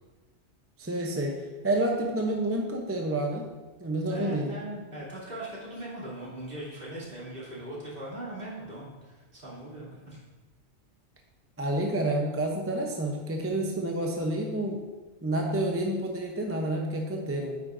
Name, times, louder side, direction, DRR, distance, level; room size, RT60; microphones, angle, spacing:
voice 1, 0.8-3.5 3.8-4.6 11.6-14.8 15.2-17.6, right 1 dB, 15° right, 1 dB, 0.6 m, -29 dB
voice 2, 4.0-10.2, right 1 dB, 50° right, -8 dB, 3.1 m, -40 dB
9.5 x 8.2 x 2.6 m, 1.2 s
omnidirectional pair, 1.2 m